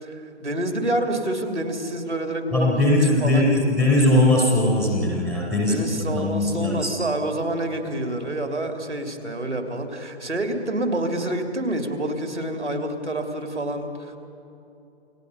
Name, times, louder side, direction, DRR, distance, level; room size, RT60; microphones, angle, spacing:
voice 1, 0.0-3.8 5.7-14.2, right 1 dB, 85° right, 4 dB, 3.0 m, -28 dB
voice 2, 2.5-6.9, left 1 dB, ahead, -2 dB, 0.5 m, -20 dB
29.0 x 18.5 x 5.5 m, 2.9 s
figure-of-eight pair, 135°, 34 cm